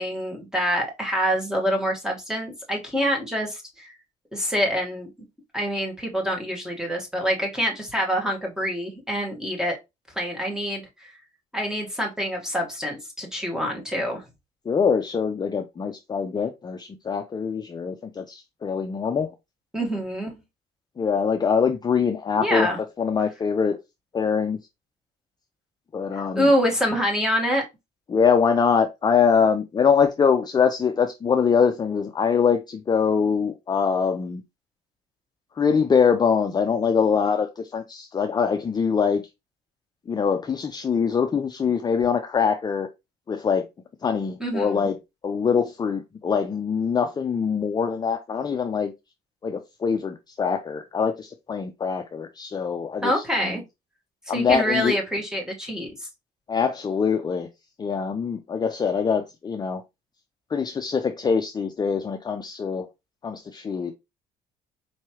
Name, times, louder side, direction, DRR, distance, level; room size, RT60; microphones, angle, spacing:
voice 1, 0.0-3.9 4.3-5.1 5.5-9.7 10.1-11.1 11.5-14.2 19.7-20.3 22.4-22.8 26.3-27.6 44.4-44.9 53.0-53.6 54.3-55.9, equal, 5° right, 1.5 m, -26 dB
voice 2, 14.7-19.3 21.0-22.7 23.0-23.8 24.1-24.6 25.9-26.5 28.1-34.4 35.6-39.2 40.1-42.9 43.3-43.6 44.0-45.0 45.2-48.9 49.4-53.6 54.3-54.9 56.5-57.5 57.8-59.8 60.5-62.9 63.2-63.9, left 6 dB, 25° left, 0.5 m, -23 dB
4.6 x 3.1 x 2.9 m
cardioid pair, 110°, 17 cm